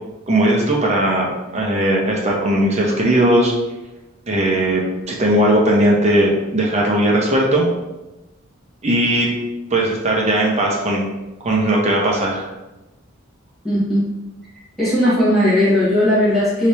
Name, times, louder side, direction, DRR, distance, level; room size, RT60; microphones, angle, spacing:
voice 1, 0.3-1.3 1.5-3.5 4.3-7.7 8.8-9.3 9.7-11.0 11.4-12.5, right 1 dB, 35° right, -2 dB, 0.8 m, -17 dB
voice 2, 13.6-14.1 14.8-16.7, left 1 dB, ahead, -11 dB, 1.4 m, -17 dB
4.2 x 2.9 x 3.4 m, 1.0 s
head